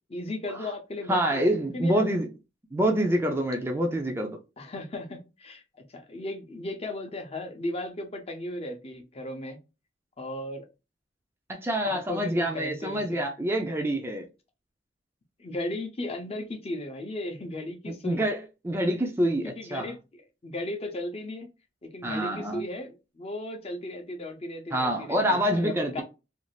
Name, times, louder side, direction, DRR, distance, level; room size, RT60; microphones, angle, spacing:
voice 1, 0.1-2.0 4.6-5.6 5.9-9.6 10.2-10.6 11.8-13.2 15.4-18.2 19.4-21.5 21.8-26.0, left 1 dB, 35° left, 0.6 m, -36 dB
voice 2, 1.1-2.3 2.7-4.4 11.5-14.2 17.9-18.4 18.6-19.9 22.0-22.6 24.7-26.0, right 1 dB, 15° right, 0.3 m, -26 dB
2.6 x 2.4 x 3.0 m
head